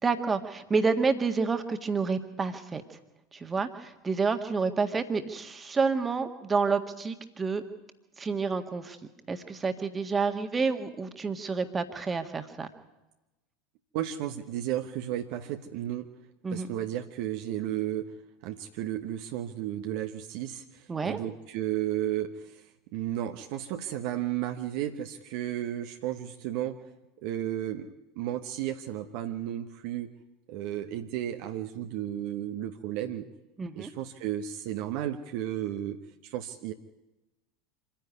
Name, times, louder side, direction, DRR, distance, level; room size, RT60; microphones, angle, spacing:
voice 1, 0.0-2.8 3.3-7.6 8.2-9.0 9.3-12.7 16.4-16.7 20.9-21.2 33.6-33.9, right 4 dB, 20° right, 7 dB, 1.8 m, -29 dB
voice 2, 13.9-16.1 16.5-18.1 18.4-22.6 22.9-26.8 27.2-30.1 30.5-33.3 33.8-36.0 36.2-36.7, right 12 dB, 55° right, 5 dB, 1.1 m, -33 dB
26.0 x 10.5 x 9.5 m, 1.0 s
figure-of-eight pair, 80°, 0 cm